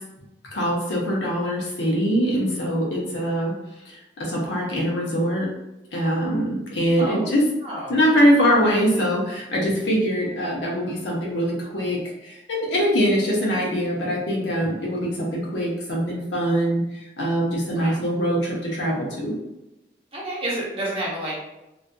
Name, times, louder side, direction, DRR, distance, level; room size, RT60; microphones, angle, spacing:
voice 1, 0.5-3.5 3.9-5.5 5.9-7.4 7.9-16.8 17.2-19.3, equal, 85° left, -3 dB, 0.8 m, -23 dB
voice 2, 7.0-7.3 7.6-8.0 17.7-18.0 20.1-21.4, right 1 dB, 30° right, -5 dB, 0.7 m, -30 dB
2.5 x 2.4 x 2.2 m, 0.93 s
head